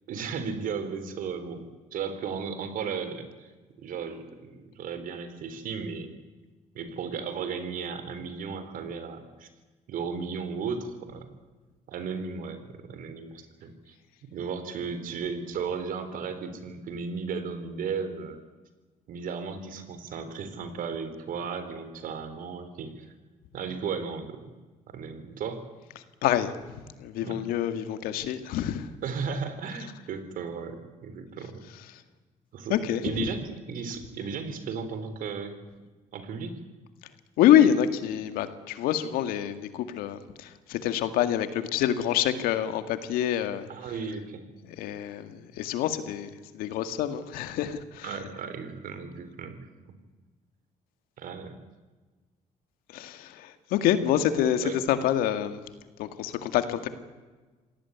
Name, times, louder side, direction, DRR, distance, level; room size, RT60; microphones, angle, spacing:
voice 1, 0.1-1.6 1.9-3.5 3.8-6.1 6.7-9.5 9.9-11.3 11.9-13.9 14.2-18.4 19.1-23.1 23.5-24.5 24.9-25.6 27.2-27.4 29.0-31.6 32.5-32.8 33.0-35.6 36.1-36.5 43.7-44.4 48.0-49.6 51.2-51.5 54.6-54.8, right 5 dB, 70° right, 10 dB, 4.2 m, -35 dB
voice 2, 26.2-26.5 27.0-28.9 32.7-33.2 37.4-43.7 44.6-48.2 52.9-55.6 56.0-56.9, left 10 dB, 85° left, 10 dB, 2.1 m, -26 dB
26.5 x 18.0 x 9.6 m, 1.3 s
cardioid pair, 85°, 15 cm